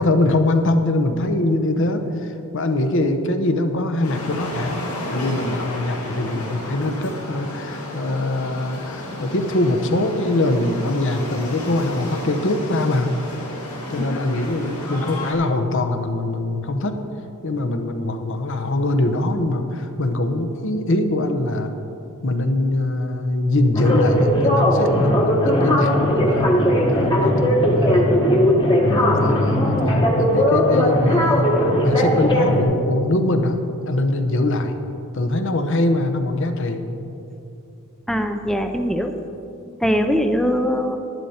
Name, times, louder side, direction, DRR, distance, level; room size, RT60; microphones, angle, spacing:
voice 1, 0.0-4.8 5.1-13.2 13.9-17.0 17.4-21.8 22.2-26.5 26.9-28.1 28.8-29.8 30.2-31.6 31.8-34.8 35.1-36.8, left 2 dB, 60° left, 7 dB, 0.8 m, -22 dB
sound 1, 4.0-15.3, left 1 dB, 85° left, 2.4 m, -33 dB
sound 2, 23.7-32.6, equal, 20° left, 1.1 m, -18 dB
voice 2, 38.1-39.1 39.8-41.0, equal, ahead, 6 dB, 0.5 m, -21 dB
11.0 x 10.5 x 4.3 m, 2.8 s
head